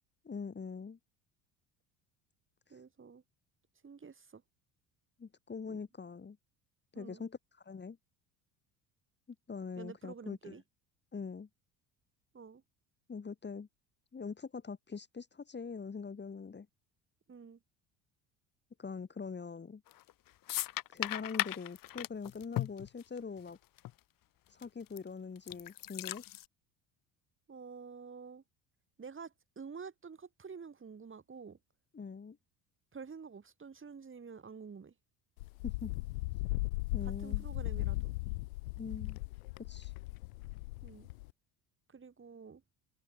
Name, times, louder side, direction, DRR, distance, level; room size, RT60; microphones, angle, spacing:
voice 1, 0.3-1.0 5.2-6.4 6.9-8.0 9.5-10.6 11.1-11.5 13.1-13.7 14.1-16.7 18.8-19.8 20.9-23.6 24.5-26.2 31.9-32.4 35.6-35.9 36.9-37.5 38.8-39.2 39.7-39.9, left 5 dB, 25° left, 3.4 m, -43 dB
voice 2, 2.7-3.2 3.8-4.4 5.7-5.8 6.9-7.3 9.8-10.6 12.3-12.6 17.3-17.6 27.5-28.4 29.0-31.6 32.9-34.9 37.0-38.1 40.8-41.1 41.9-42.6, right 5 dB, 30° right, 7.2 m, -49 dB
sound 1, 19.9-20.1 20.5-23.5 23.8-23.9 24.6-25.0 25.4-26.4, left 15 dB, 55° left, 1.5 m, -37 dB
Wind, 35.4-41.3, left 23 dB, 80° left, 0.7 m, -37 dB
hypercardioid pair, 70°, 41 cm